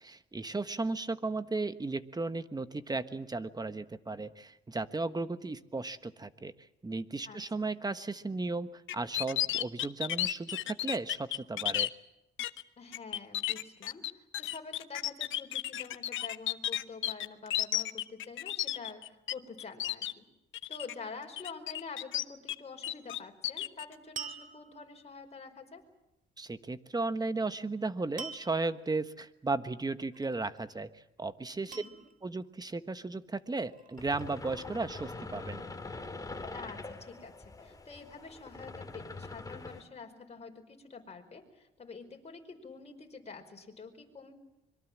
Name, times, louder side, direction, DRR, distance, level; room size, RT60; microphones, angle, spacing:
voice 1, 0.0-6.5 6.8-11.9 26.4-31.8 32.2-35.6, right 3 dB, 20° right, 11 dB, 1.3 m, -35 dB
voice 2, 7.3-7.7 12.8-20.2 20.7-25.8 31.7-32.0 36.5-44.3, left 4 dB, 35° left, 3 dB, 5.1 m, -47 dB
sound 1, 8.9-11.9 12.4-12.6 12.9-19.3 19.6-20.1 20.5-20.9 21.4-22.6 22.8-23.8, left 13 dB, 75° left, 0.9 m, -33 dB
sound 2, 24.2-25.1 28.2-28.8 30.1-30.7 31.7-32.5 33.5-34.3, right 5 dB, 40° right, 2.1 m, -45 dB
sound 3, 34.0-39.8, left 3 dB, 15° left, 3.0 m, -44 dB
25.5 x 23.0 x 7.5 m, 0.87 s
cardioid pair, 90°, 20 cm